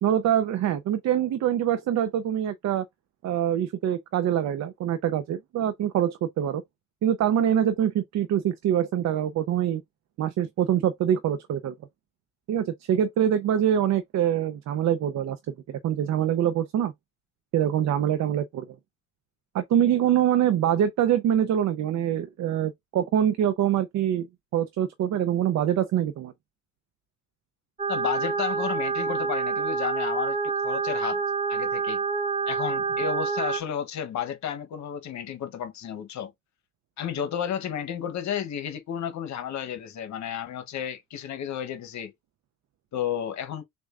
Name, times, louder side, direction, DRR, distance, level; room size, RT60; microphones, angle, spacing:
voice 1, 0.0-2.9 3.2-6.6 7.0-9.8 10.2-11.7 12.5-16.9 17.5-18.7 19.5-24.3 24.5-26.3, right 10 dB, 65° right, 0.5 m, -24 dB
sound 1, 27.8-33.6, right 5 dB, 20° right, 0.7 m, -27 dB
voice 2, 27.9-31.2 31.5-32.0 32.5-36.3 37.0-42.1 42.9-43.6, left 9 dB, 65° left, 0.9 m, -32 dB
6.3 x 2.3 x 2.4 m
cardioid pair, 90°, 30 cm